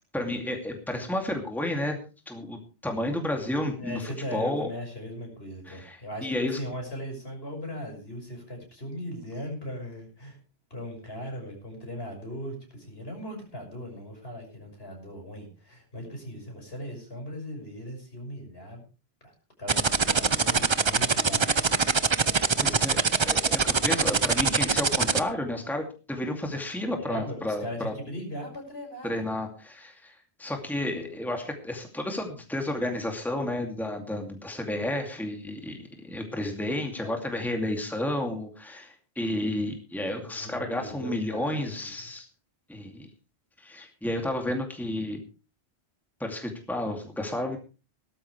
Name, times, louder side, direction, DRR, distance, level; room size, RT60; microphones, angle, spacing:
voice 1, 0.1-2.0 2.3-4.7 5.7-6.6 22.6-27.9 29.0-42.3 42.7-43.1 43.6-45.2 46.2-47.6, left 1 dB, ahead, 3 dB, 2.5 m, -31 dB
voice 2, 3.8-10.4 10.7-18.8 19.2-19.3 19.6-21.8 26.9-29.4 37.0-37.5 40.1-41.9, equal, 65° left, 2 dB, 6.4 m, -39 dB
sound 1, 19.7-25.2, right 5 dB, 30° right, 0.6 m, -22 dB
18.5 x 13.0 x 3.3 m, 0.33 s
omnidirectional pair, 1.1 m